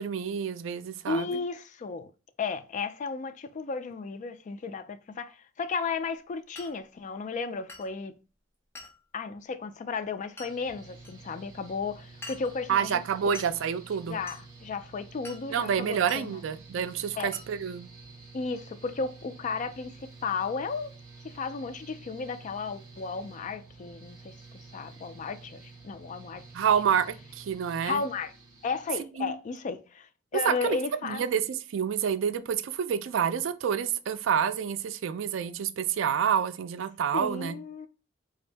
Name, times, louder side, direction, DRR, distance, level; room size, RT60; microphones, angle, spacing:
voice 1, 0.0-1.3 12.7-14.2 15.5-17.9 26.5-28.0 29.2-29.3 30.4-30.8 31.0-37.6, right 7 dB, 70° right, 0.3 m, -28 dB
voice 2, 1.1-2.1 2.4-8.1 9.1-13.3 14.1-16.3 17.2-17.3 18.3-20.9 21.2-24.4 24.7-26.4 27.8-28.3 28.6-31.2 37.1-37.9, left 4 dB, 40° left, 0.3 m, -34 dB
Glass, 6.6-6.8 7.7-7.9 8.8-9.0 10.4-10.6 11.0-11.1 12.2-12.6 13.3-13.6 14.3-14.5 15.2-15.5 16.1-16.3 17.3-17.5, left 2 dB, 15° left, 0.8 m, -44 dB
Mechanical fan, 10.4-28.9, right 3 dB, 20° right, 1.2 m, -50 dB
3.7 x 2.6 x 3.3 m
head